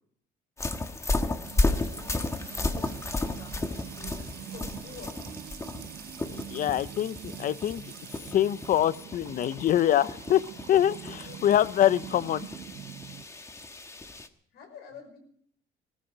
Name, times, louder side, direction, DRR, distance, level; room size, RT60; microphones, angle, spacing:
sound 1, 0.6-14.3, left 2 dB, 15° left, 1.2 m, -34 dB
voice 1, 1.1-1.5 1.8-5.2 11.3-11.4 14.5-15.2, left 6 dB, 70° left, 5 dB, 5.7 m, -49 dB
Music / Water tap faucet / Trickle dribble, 1.4-13.2, right 10 dB, 70° right, 1.1 m, -44 dB
voice 2, 6.5-7.9 8.3-10.4 10.7-12.5, left 11 dB, 55° left, 18 dB, 0.6 m, -24 dB
18.5 x 14.5 x 5.0 m, 0.65 s
cardioid pair, 110°, 17 cm